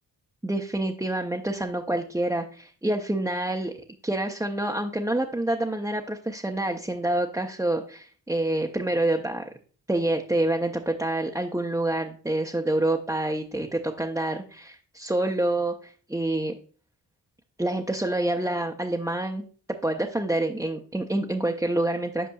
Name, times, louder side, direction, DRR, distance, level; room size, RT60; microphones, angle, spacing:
voice 1, 0.4-3.8 4.0-9.5 9.9-16.6 17.6-22.3, right 1 dB, 5° right, 1 dB, 0.6 m, -27 dB
8.4 x 5.2 x 2.3 m, 0.42 s
cardioid pair, 50°, 44 cm